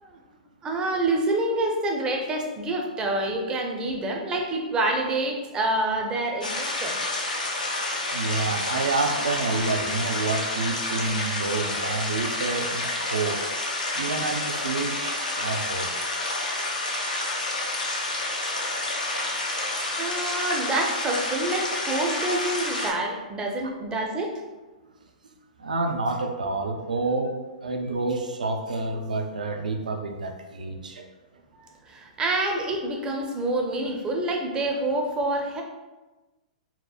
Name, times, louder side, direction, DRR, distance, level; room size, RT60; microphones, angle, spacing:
voice 1, 0.6-7.0 20.0-24.4 31.9-35.6, right 2 dB, 20° right, 2 dB, 0.4 m, -27 dB
sound 1, 6.4-22.9, left 2 dB, 90° left, 0.5 m, -29 dB
voice 2, 8.1-13.5 13.9-15.9 19.2-19.4 25.2-27.4 27.6-31.1, right 3 dB, 85° right, 4 dB, 0.3 m, -29 dB
2.8 x 2.0 x 2.3 m, 1.2 s
hypercardioid pair, 115°, 4 cm